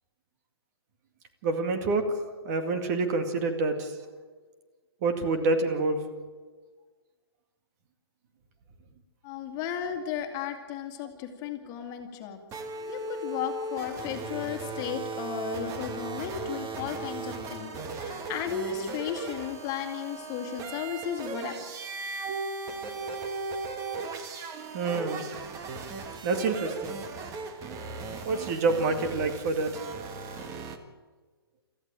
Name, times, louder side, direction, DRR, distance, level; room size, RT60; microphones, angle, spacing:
voice 1, 1.4-2.0 2.4-3.9 5.0-6.0 24.7-25.2 26.2-27.0 28.2-29.8, right 3 dB, 40° right, 6 dB, 2.3 m, -27 dB
voice 2, 9.2-12.4 12.8-21.6, left 8 dB, 30° left, 4 dB, 2.3 m, -35 dB
sound 1, 12.5-30.8, right 3 dB, 25° right, 1.6 m, -37 dB
23.5 x 14.5 x 8.9 m, 1.4 s
hypercardioid pair, 135°, 13 cm